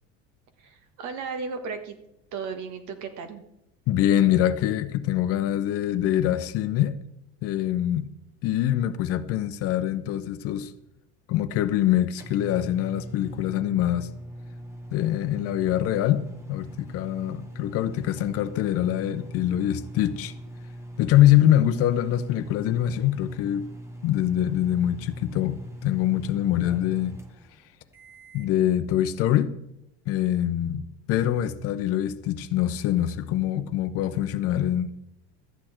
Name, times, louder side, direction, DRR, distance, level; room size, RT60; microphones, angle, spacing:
voice 1, 0.6-2.0 2.3-3.4, right 5 dB, 60° right, 1.7 m, -35 dB
voice 2, 3.9-7.0 7.4-8.1 8.4-10.7 11.3-14.1 14.9-20.3 21.0-23.7 24.0-27.1 28.3-29.6 30.1-34.9, left 12 dB, 45° left, 0.7 m, -24 dB
sound 1, 11.8-28.6, equal, 10° right, 1.0 m, -41 dB
13.0 x 8.7 x 4.4 m
cardioid pair, 155°, 32 cm